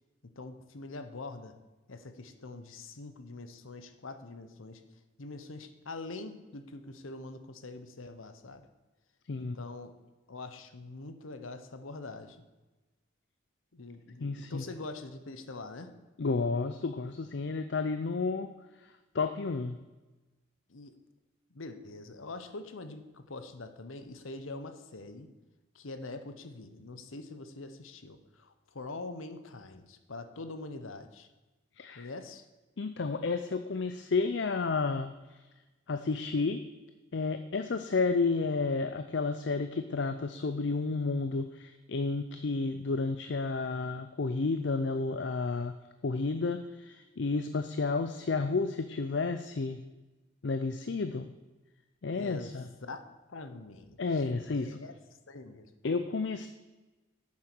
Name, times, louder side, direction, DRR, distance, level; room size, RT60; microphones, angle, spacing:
voice 1, 0.2-1.5 1.9-4.8 5.2-8.7 9.4-9.9 10.3-12.4 13.7-16.0 20.7-20.9 21.5-25.3 25.7-31.3 31.9-32.4 52.1-52.5 52.8-54.9 55.3-55.7, left 3 dB, 85° left, 9 dB, 0.9 m, -44 dB
voice 2, 14.2-14.6 16.2-18.5 18.8-19.8 31.8-32.1 32.8-35.4 35.9-36.6 37.1-45.7 46.0-49.8 50.4-51.3 52.0-52.7 54.0-54.8 55.8-56.5, left 4 dB, 60° left, 9 dB, 0.5 m, -31 dB
8.7 x 7.4 x 6.1 m, 1.1 s
head